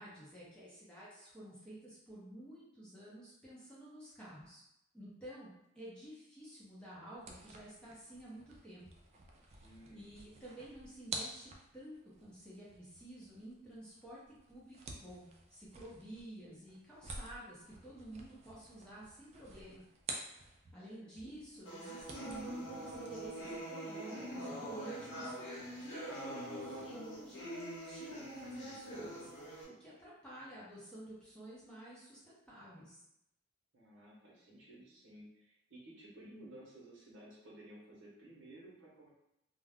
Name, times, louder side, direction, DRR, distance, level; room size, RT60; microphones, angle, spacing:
voice 1, 0.0-4.6 4.9-8.9 9.5-14.2 14.5-19.8 20.3-25.3 25.8-29.3 29.7-33.0, right 1 dB, 5° left, -8 dB, 0.7 m, -52 dB
sound 1, 7.1-20.9 21.2-23.6, right 3 dB, 30° right, 0.3 m, -50 dB
voice 2, 9.6-10.1 21.0-21.3 33.7-39.1, right 1 dB, 60° right, -5 dB, 0.9 m, -55 dB
sound 2, 21.7-29.6, right 1 dB, 65° left, 0.9 m, -44 dB
2.3 x 2.2 x 3.5 m, 0.81 s
head